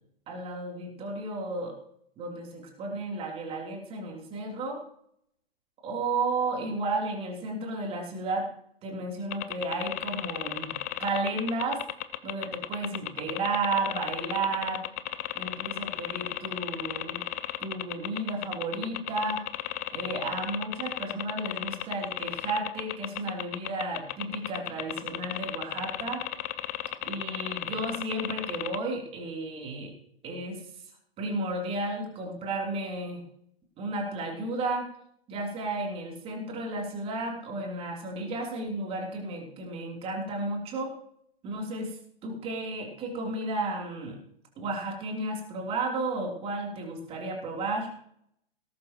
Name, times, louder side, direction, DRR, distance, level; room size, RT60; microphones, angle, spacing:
voice 1, 0.3-1.8 2.2-4.8 5.8-8.5 8.8-11.8 12.2-14.8 15.3-17.2 17.6-19.5 19.9-26.2 27.0-29.9 30.2-30.6 31.2-33.2 33.8-34.9 35.3-40.9 41.4-41.9 42.2-44.2 44.6-47.9, right 2 dB, 20° right, 1 dB, 3.3 m, -33 dB
sound 1, 9.3-28.8, left 16 dB, 15° left, 0.4 m, -34 dB
19.0 x 11.0 x 3.0 m, 0.67 s
figure-of-eight pair, 115°, 30 cm